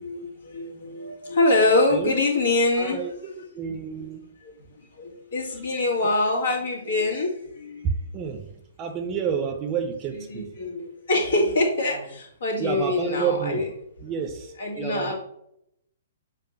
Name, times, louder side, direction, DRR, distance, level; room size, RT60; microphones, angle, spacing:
voice 1, 0.0-3.0 3.7-4.1 4.4-4.5 4.8-7.9 10.1-13.7 14.6-15.2, left 2 dB, 60° left, 0 dB, 2.0 m, -25 dB
voice 2, 2.8-4.2 7.8-8.5 8.8-10.5 12.6-13.6 14.0-15.2, right 6 dB, 25° right, 5 dB, 0.8 m, -29 dB
7.3 x 2.6 x 5.5 m, 0.75 s
figure-of-eight pair, 120°, 0 cm